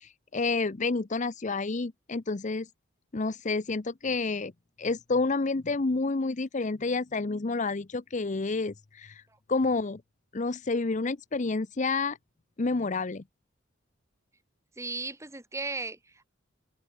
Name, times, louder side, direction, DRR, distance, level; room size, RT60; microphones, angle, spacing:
voice 1, 0.0-2.7 3.1-4.5 4.8-9.2 9.5-10.0 10.3-12.2 12.6-13.2, left 3 dB, 40° left, 0.7 m, -29 dB
voice 2, 14.8-16.3, right 3 dB, 15° right, 2.4 m, -36 dB
head